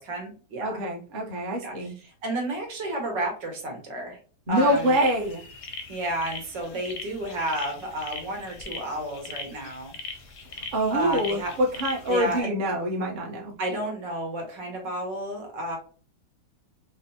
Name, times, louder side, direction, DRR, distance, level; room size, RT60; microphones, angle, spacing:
voice 1, 0.0-0.8 1.6-4.2 4.5-5.0 5.9-9.9 10.9-11.5 12.1-12.5 13.6-15.8, right 1 dB, 85° right, 2 dB, 1.8 m, -31 dB
voice 2, 0.6-1.9 4.5-5.4 10.7-13.5, equal, 40° right, -1 dB, 0.7 m, -25 dB
sound 1, 4.5-12.4, left 4 dB, 65° left, 0.8 m, -41 dB
5.0 x 2.0 x 2.7 m, 0.40 s
omnidirectional pair, 1.9 m